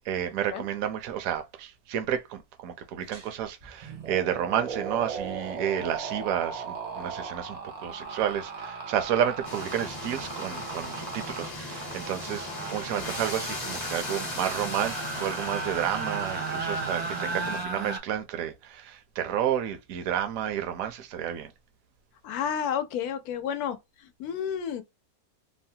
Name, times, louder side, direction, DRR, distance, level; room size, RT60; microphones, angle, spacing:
voice 1, 0.1-21.5, right 10 dB, 65° right, 1.0 m, -31 dB
sound 1, 3.1-3.3 3.6-18.0, right 4 dB, 90° right, 0.3 m, -36 dB
sound 2, 9.4-17.7, left 2 dB, 40° left, 0.7 m, -38 dB
voice 2, 22.2-23.8 24.2-24.8, left 8 dB, 75° left, 1.0 m, -30 dB
3.2 x 2.1 x 2.7 m
omnidirectional pair, 1.7 m